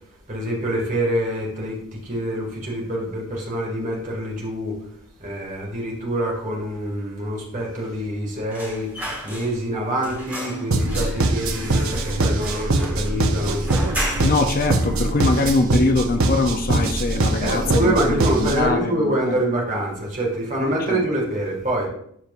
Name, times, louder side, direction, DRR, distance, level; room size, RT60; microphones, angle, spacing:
voice 1, 0.3-4.8 5.2-8.9 9.2-13.7 17.4-21.9, right 1 dB, 35° right, -2 dB, 1.9 m, -25 dB
sound 1, 8.5-9.8 10.0-14.6 14.9-15.0 15.3-16.1 16.5-16.7 17.0-17.7 18.0-18.1, equal, 10° right, 1.7 m, -33 dB
sound 2, 10.7-18.7, right 2 dB, 70° right, 0.8 m, -23 dB
voice 2, 14.2-19.4 20.6-21.0, left 3 dB, 40° left, 6 dB, 0.5 m, -23 dB
12.5 x 4.5 x 2.5 m, 0.68 s
head